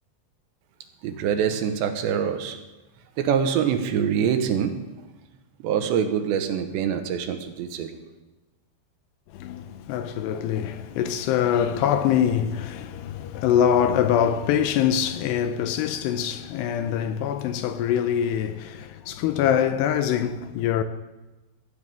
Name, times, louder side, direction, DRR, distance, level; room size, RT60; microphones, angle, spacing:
voice 1, 1.0-2.6 3.2-4.7 5.6-8.0, right 8 dB, 80° right, 3.3 m, -24 dB
voice 2, 9.3-20.8, left 9 dB, 80° left, 2.6 m, -24 dB
22.0 x 15.0 x 3.6 m
omnidirectional pair, 5.2 m